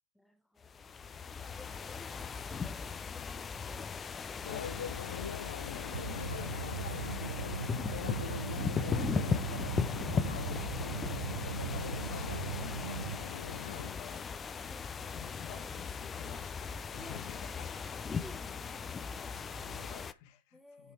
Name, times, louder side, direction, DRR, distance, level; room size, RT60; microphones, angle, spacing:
voice 1, 0.1-4.0 14.6-15.2 16.2-16.4 17.0-17.3 18.0-19.4 20.5-20.9, left 1 dB, 5° left, 0.9 m, -56 dB
sound 1, 0.6-20.1, left 6 dB, 20° left, 0.5 m, -38 dB
sound 2, 4.4-13.9, left 9 dB, 75° left, 0.4 m, -42 dB
voice 2, 4.5-6.6 12.1-13.1 13.5-14.3 15.1-18.0 19.3-20.9, left 10 dB, 50° left, 1.5 m, -51 dB
sound 3, 5.9-13.2, right 9 dB, 70° right, 0.5 m, -39 dB
8.1 x 4.1 x 4.9 m
hypercardioid pair, 105°, 0 cm